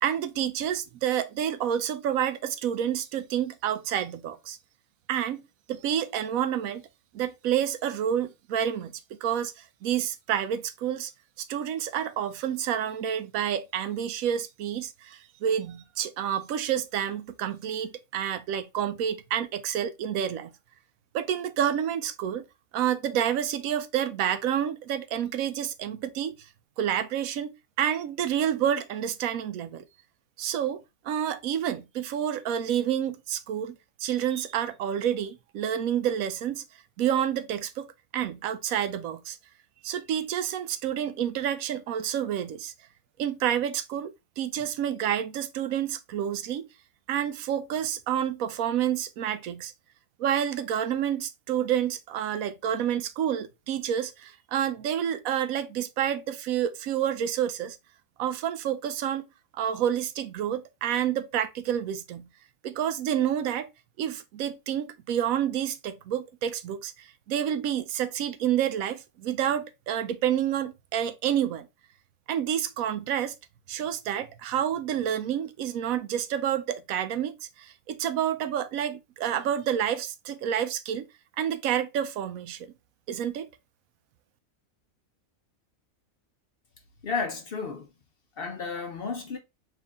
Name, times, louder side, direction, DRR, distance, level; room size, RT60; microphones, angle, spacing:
voice 1, 0.0-4.6 5.1-5.4 5.7-6.8 7.1-11.1 11.4-20.5 21.1-22.4 22.7-26.5 26.8-29.8 30.4-33.7 34.0-36.6 37.0-39.4 39.8-42.7 43.2-46.7 47.1-49.7 50.2-57.8 58.2-59.2 59.6-62.3 62.6-63.7 64.0-71.7 72.3-73.3 73.7-81.1 81.4-82.7 83.1-83.5, right 9 dB, 75° right, 1.0 m, -29 dB
voice 2, 87.0-87.9 88.4-89.4, left 5 dB, 55° left, 0.7 m, -32 dB
4.5 x 2.7 x 3.4 m
omnidirectional pair, 1.5 m